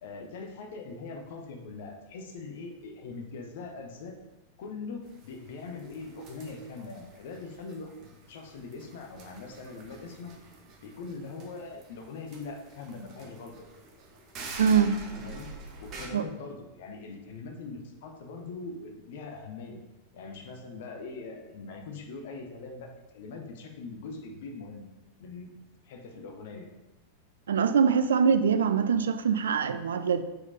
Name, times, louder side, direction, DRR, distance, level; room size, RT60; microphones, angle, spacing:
voice 1, 0.0-4.2 4.6-10.3 10.8-13.7 15.1-15.5 15.8-19.8 20.1-24.9 25.2-25.5 25.8-26.8, left 4 dB, 55° left, 3 dB, 1.0 m, -42 dB
sound 1, 5.0-16.1, right 3 dB, 35° right, 1.1 m, -47 dB
voice 2, 14.6-15.0 16.1-16.2 27.5-30.2, right 6 dB, 65° right, 10 dB, 0.3 m, -23 dB
4.8 x 4.2 x 5.0 m, 1.0 s
figure-of-eight pair, 90°, 0 cm